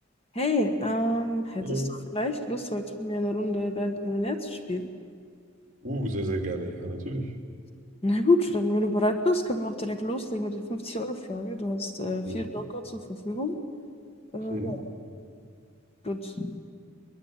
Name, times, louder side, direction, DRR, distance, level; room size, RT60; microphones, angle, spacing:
voice 1, 0.3-1.8 2.1-4.9 8.0-13.6 14.3-14.8 16.0-16.5, left 1 dB, 30° left, 6 dB, 1.5 m, -28 dB
voice 2, 1.6-1.9 5.8-7.3 12.2-12.4 14.5-14.8, right 1 dB, 40° right, 3 dB, 2.9 m, -31 dB
23.0 x 21.0 x 9.2 m, 2.2 s
head